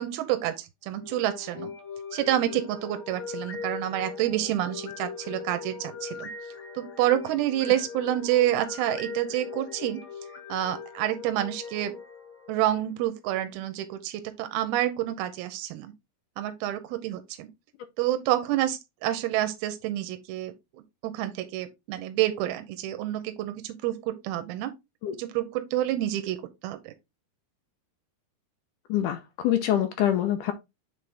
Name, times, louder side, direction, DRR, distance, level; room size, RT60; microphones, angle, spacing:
voice 1, 0.0-1.7 2.1-6.3 6.8-10.0 10.5-12.0 12.5-15.9 16.4-17.5 18.0-20.5 21.0-24.7 25.1-26.4 26.6-26.9, right 13 dB, 85° right, 2.6 m, -28 dB
sound 1, 0.9-13.0, left 5 dB, 60° left, 1.4 m, -40 dB
voice 2, 28.9-30.5, left 11 dB, 80° left, 1.9 m, -25 dB
7.7 x 3.8 x 3.3 m
omnidirectional pair, 4.4 m